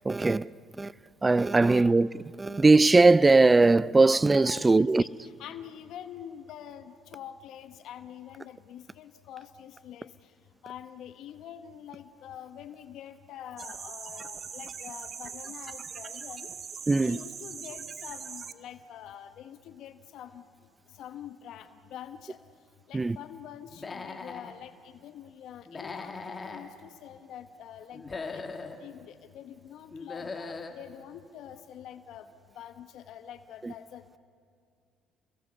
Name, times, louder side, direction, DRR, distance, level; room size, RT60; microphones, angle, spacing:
voice 1, 0.0-0.5 0.8-0.9 1.2-2.1 2.4-5.0 16.9-17.2 22.9-23.2 33.6-33.7, right 3 dB, 20° right, 0.5 m, -20 dB
voice 2, 1.6-1.9 4.4-10.3 10.6-16.5 17.0-20.4 20.9-22.4 22.9-28.4 28.8-32.3 32.5-34.2, left 10 dB, 70° left, 1.0 m, -45 dB
sound 1, 13.6-18.5, right 6 dB, 45° right, 1.1 m, -41 dB
Human voice / Animal, 23.7-24.5 25.7-26.6 27.9-28.8 29.9-30.8, left 4 dB, 30° left, 2.3 m, -39 dB
29.0 x 22.0 x 6.8 m
supercardioid pair, 75°, 0 cm